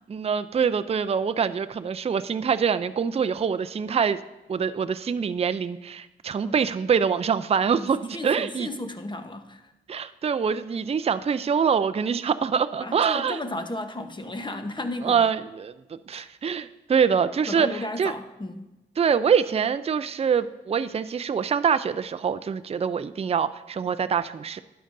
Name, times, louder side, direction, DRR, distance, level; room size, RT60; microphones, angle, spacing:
voice 1, 0.1-4.2 4.5-8.7 9.9-13.4 15.0-18.1 19.0-24.6, right 6 dB, 30° right, 12 dB, 0.4 m, -25 dB
voice 2, 7.7-9.6 12.8-15.3 16.1-16.3 17.5-18.7, left 1 dB, 25° left, 7 dB, 1.0 m, -34 dB
12.0 x 8.7 x 2.6 m, 0.99 s
cardioid pair, 55°, 20 cm